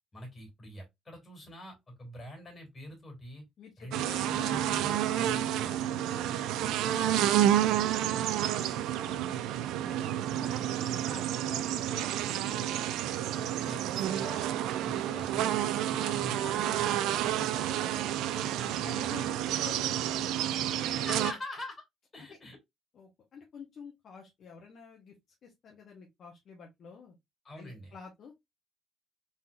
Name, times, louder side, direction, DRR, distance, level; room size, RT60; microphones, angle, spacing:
voice 1, 0.1-3.4 3.8-5.7 13.3-14.5 14.8-19.1 21.0-21.8 22.1-22.6 27.4-27.9, left 1 dB, 25° left, 2.9 m, -45 dB
voice 2, 3.6-4.6 5.0-7.3 7.6-9.6 9.8-12.2 12.6-12.7 14.6-15.2 18.8-21.4 22.2-22.4 22.9-25.1 25.4-27.1 27.5-28.3, left 6 dB, 50° left, 1.1 m, -50 dB
sound 1, 3.9-21.3, right 11 dB, 90° right, 0.4 m, -30 dB
4.0 x 3.8 x 2.6 m
cardioid pair, 140°, 0 cm